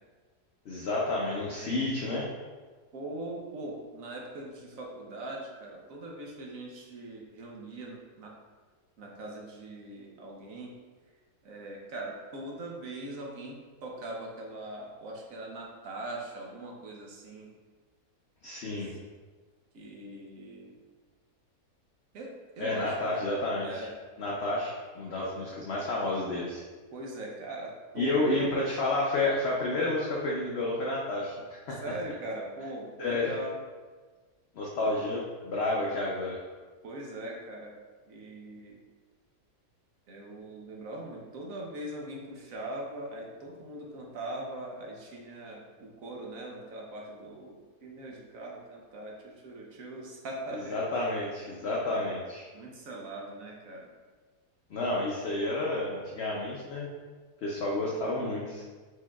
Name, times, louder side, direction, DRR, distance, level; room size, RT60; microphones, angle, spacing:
voice 1, 0.7-2.3 18.4-18.9 22.6-23.9 24.2-26.6 28.0-31.8 33.0-33.3 34.5-36.4 50.5-52.5 54.7-56.9 57.4-58.6, left 2 dB, 60° left, -3 dB, 0.7 m, -30 dB
voice 2, 2.9-8.3 9.0-10.7 11.4-17.5 19.7-20.8 22.1-23.4 23.6-23.9 25.4-25.5 26.9-28.5 31.7-33.6 35.9-36.0 36.8-37.7 38.1-38.8 40.1-50.8 51.8-52.1 52.5-53.9, right 1 dB, 60° right, -1 dB, 1.2 m, -41 dB
4.8 x 4.5 x 2.3 m, 1.4 s
omnidirectional pair, 1.7 m